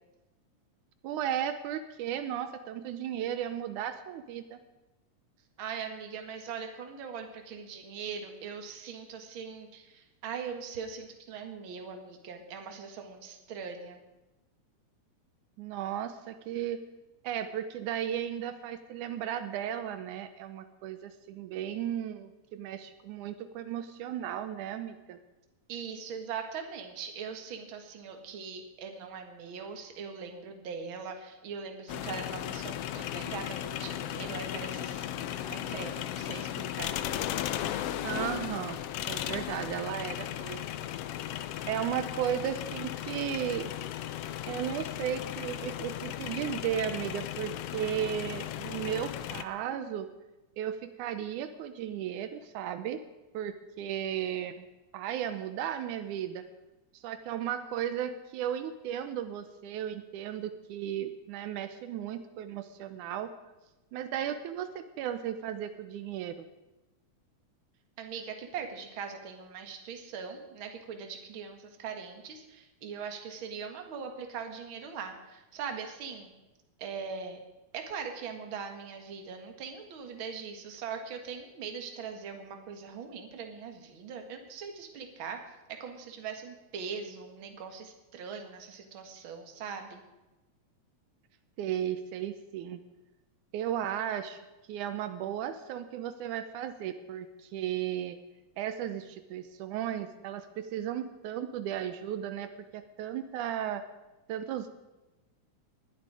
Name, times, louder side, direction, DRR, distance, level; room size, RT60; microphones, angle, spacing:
voice 1, 1.0-4.6 15.6-16.8 17.2-25.2 38.0-40.6 41.7-43.7 44.5-50.1 50.6-53.0 53.3-54.7 54.9-56.4 56.9-63.3 63.9-66.5 91.6-92.8 93.5-94.4 94.7-98.2 98.6-103.8 104.3-104.7, right 10 dB, 85° right, 10 dB, 2.2 m, -35 dB
voice 2, 5.6-14.0 25.7-36.9 41.3-41.4 68.0-76.3 76.8-77.4 77.7-85.4 85.8-90.0, right 6 dB, 50° right, 5 dB, 2.1 m, -41 dB
sound 1, 31.9-49.4, left 11 dB, 85° left, 1.3 m, -36 dB
20.0 x 12.0 x 4.8 m, 1.0 s
omnidirectional pair, 3.5 m